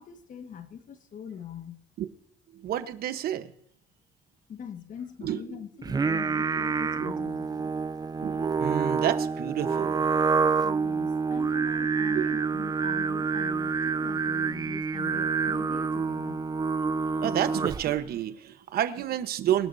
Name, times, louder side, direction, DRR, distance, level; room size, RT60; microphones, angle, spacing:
voice 1, 0.0-1.9 4.5-7.7 10.6-16.5, left 7 dB, 50° left, 1.6 m, -43 dB
voice 2, 2.5-3.5 5.2-5.6 7.0-7.1 8.2-10.1 12.1-12.3 17.2-19.7, right 11 dB, 65° right, 1.1 m, -30 dB
Singing, 5.8-18.0, right 5 dB, 25° right, 0.5 m, -27 dB
24.5 x 12.0 x 2.7 m
cardioid pair, 110°, 17 cm